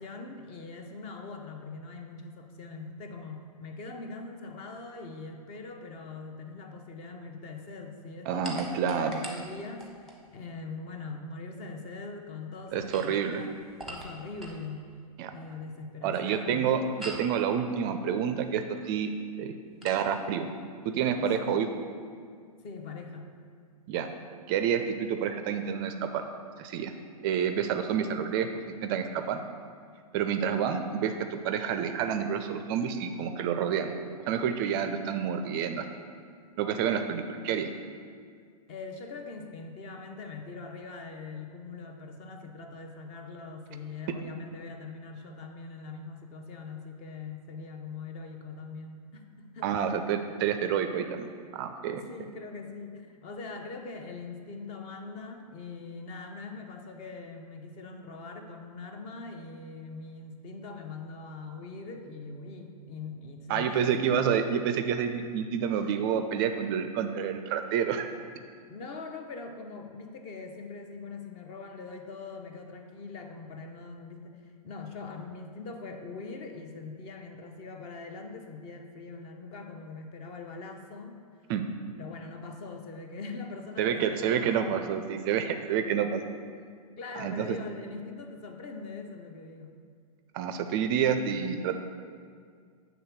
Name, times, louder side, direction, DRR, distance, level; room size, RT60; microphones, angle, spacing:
voice 1, 0.0-13.6 13.9-14.9 15.3-16.7 21.2-21.7 22.6-23.3 38.7-49.8 51.9-64.3 68.7-81.2 82.0-84.9 87.0-89.7, left 4 dB, 30° left, 5 dB, 0.7 m, -42 dB
voice 2, 8.3-9.2 12.7-13.4 15.2-15.3 16.0-19.1 19.4-19.6 19.8-20.5 20.8-21.7 23.9-24.1 24.5-26.2 26.6-26.9 27.2-28.5 28.8-29.4 30.1-33.9 34.3-35.9 36.6-37.7 49.6-52.0 63.5-68.1 81.5-81.6 83.8-86.2 87.2-87.6 90.3-91.8, right 8 dB, 35° right, 7 dB, 0.4 m, -28 dB
sound 1, 8.4-10.2 12.7-14.7 17.0-17.4 19.8-20.1, right 1 dB, ahead, 0.9 m, -42 dB
7.8 x 3.5 x 5.8 m, 2.1 s
figure-of-eight pair, 110°, 20 cm